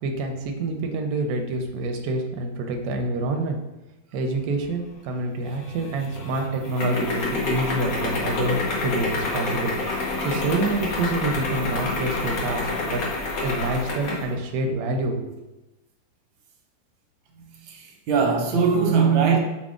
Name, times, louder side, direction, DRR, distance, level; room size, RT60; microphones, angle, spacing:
voice 1, 0.0-3.6 4.1-9.7 10.2-13.0 13.4-15.4, right 2 dB, 70° right, 0.9 m, -27 dB
sound 1, 5.5-14.3, left 3 dB, 55° left, 1.2 m, -28 dB
voice 2, 17.7-19.4, right 6 dB, 85° right, 1.5 m, -20 dB
5.8 x 2.0 x 3.6 m
omnidirectional pair, 2.1 m